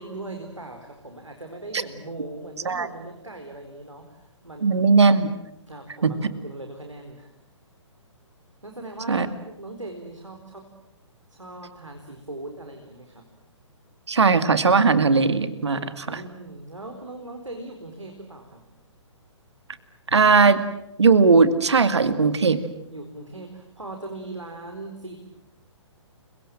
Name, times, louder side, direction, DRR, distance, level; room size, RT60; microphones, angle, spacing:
voice 1, 0.0-4.9 5.7-7.3 8.6-9.3 9.6-10.7 11.3-13.3 15.7-18.6 22.9-25.2, right 2 dB, 80° right, 3 dB, 4.2 m, -39 dB
voice 2, 4.6-5.4 6.0-6.2 9.1-9.3 14.1-15.8 16.1-16.2 20.1-20.6 21.0-22.6, right 4 dB, 65° right, 12 dB, 2.2 m, -18 dB
30.0 x 24.0 x 7.6 m, 0.85 s
figure-of-eight pair, 125°, 16 cm